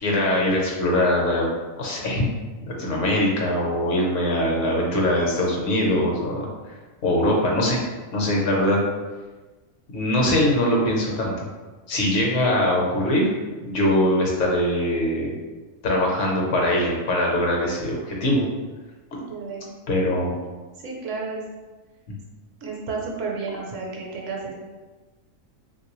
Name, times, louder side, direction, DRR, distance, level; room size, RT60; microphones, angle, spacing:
voice 1, 0.0-1.5 1.8-2.2 2.6-6.5 7.0-7.8 8.1-8.8 9.9-11.5 11.9-13.2 13.6-15.3 15.8-18.4 19.9-20.3, left 1 dB, 65° left, -2 dB, 1.1 m, -22 dB
voice 2, 19.1-19.7 20.8-21.4 22.6-24.5, right 4 dB, 70° right, -1 dB, 0.9 m, -32 dB
3.2 x 2.6 x 2.9 m, 1.3 s
omnidirectional pair, 1.4 m